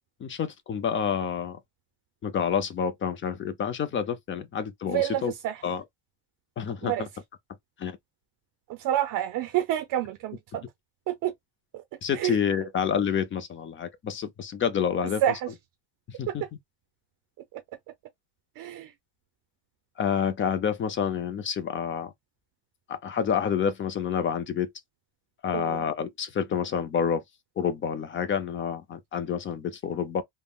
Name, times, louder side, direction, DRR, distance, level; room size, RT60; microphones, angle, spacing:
voice 1, 0.2-1.6 2.2-5.3 5.6-5.8 6.6-7.1 7.8-8.0 12.0-15.2 16.1-16.4 20.0-22.1 22.9-24.7 25.4-27.2 27.6-30.2, left 7 dB, 30° left, 0.4 m, -28 dB
voice 2, 4.9-5.6 6.8-7.1 8.7-10.6 11.1-11.3 11.7-11.8 12.1-12.4 15.2-15.5 16.3-16.5 17.5-17.6 18.6-18.9 25.5-25.9, right 12 dB, 50° right, 0.5 m, -28 dB
3.5 x 2.1 x 2.3 m
cardioid pair, 150°, 42 cm